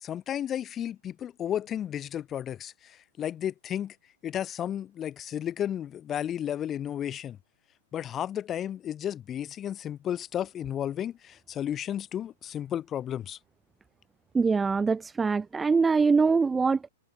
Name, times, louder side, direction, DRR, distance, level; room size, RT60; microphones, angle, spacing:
voice 1, 0.0-4.0 4.2-7.4 7.9-13.4, left 10 dB, 25° left, 1.9 m, -33 dB
voice 2, 14.3-16.9, right 4 dB, 10° right, 0.6 m, -23 dB
hypercardioid pair, 135°, 0 cm